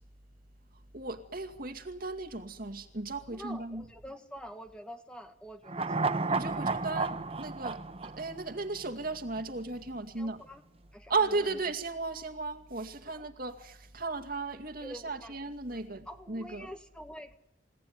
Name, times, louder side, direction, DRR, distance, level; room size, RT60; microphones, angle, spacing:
voice 1, 0.9-3.8 6.3-10.4 11.1-16.7, right 3 dB, 50° right, 2.2 m, -35 dB
voice 2, 3.3-6.3 10.1-10.6 10.9-11.6 13.1-13.2 14.8-15.4 15.7-17.4, equal, 5° left, 1.7 m, -47 dB
sound 1, 5.7-9.1 9.4-9.5, right 3 dB, 30° right, 0.9 m, -32 dB
29.0 x 17.5 x 9.6 m
head